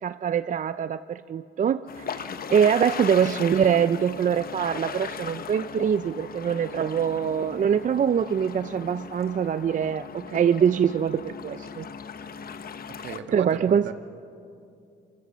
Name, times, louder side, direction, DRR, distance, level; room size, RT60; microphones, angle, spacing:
voice 1, 0.0-11.9 13.3-13.9, right 8 dB, 40° right, 14 dB, 0.5 m, -24 dB
sound 1, 1.9-13.2, left 6 dB, 50° left, 1.0 m, -38 dB
voice 2, 12.9-13.9, right 7 dB, 65° right, 8 dB, 1.5 m, -36 dB
25.0 x 24.0 x 6.3 m, 2.6 s
cardioid pair, 90°, 20 cm